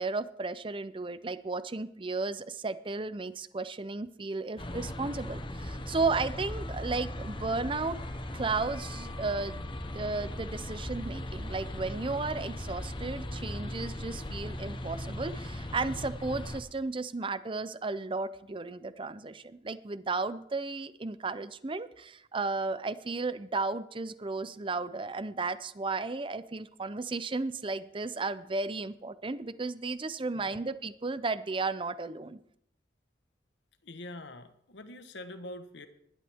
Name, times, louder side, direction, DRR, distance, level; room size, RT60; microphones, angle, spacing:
voice 1, 0.0-8.0 8.3-9.6 9.9-32.4, right 3 dB, 30° right, 14 dB, 0.6 m, -34 dB
sound 1, 4.6-16.6, left 1 dB, 30° left, 1.0 m, -38 dB
voice 2, 30.3-30.6 33.8-35.9, left 1 dB, 80° left, 9 dB, 1.3 m, -44 dB
19.5 x 11.5 x 3.6 m, 0.73 s
head